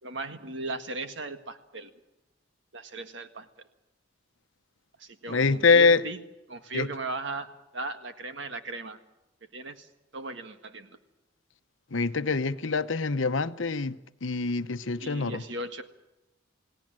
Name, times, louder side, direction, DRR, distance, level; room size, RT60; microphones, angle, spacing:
voice 1, 0.0-1.9 2.7-3.5 5.0-6.2 6.5-9.0 9.5-11.0 15.0-15.8, right 2 dB, 65° right, 1.7 m, -37 dB
voice 2, 5.3-6.0 6.7-6.9 11.9-15.4, left 4 dB, 75° left, 0.9 m, -24 dB
28.5 x 18.0 x 7.6 m
head